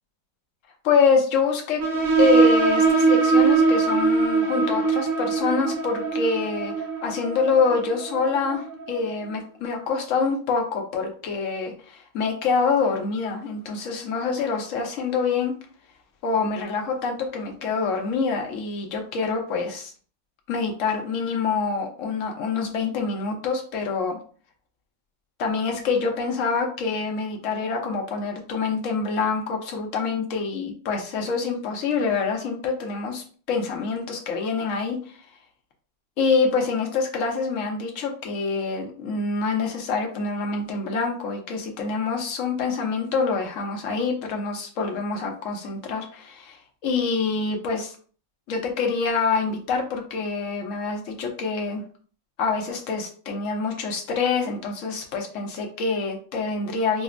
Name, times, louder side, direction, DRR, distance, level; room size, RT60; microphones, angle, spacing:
voice 1, 0.8-1.8 2.2-15.5 16.2-19.9 20.5-24.2 25.4-35.0 36.2-47.9 48.5-51.8 52.4-57.0, left 4 dB, 60° left, 2 dB, 0.9 m, -26 dB
sound 1, 1.8-9.1, right 4 dB, 60° right, 1.0 m, -22 dB
5.1 x 2.0 x 2.5 m, 0.43 s
omnidirectional pair, 1.9 m